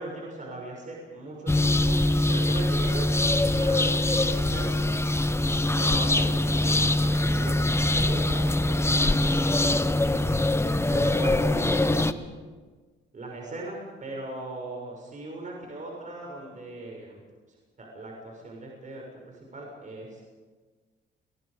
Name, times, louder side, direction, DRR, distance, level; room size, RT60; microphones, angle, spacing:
voice 1, 0.0-3.1 3.4-4.9 5.8-10.5 10.9-12.3 13.1-17.2 17.8-20.3, right 2 dB, 40° right, -1 dB, 6.7 m, -39 dB
sound 1, 1.5-12.1, left 1 dB, 15° left, 1.0 m, -23 dB
28.0 x 22.5 x 5.2 m, 1.4 s
cardioid pair, 90°, 20 cm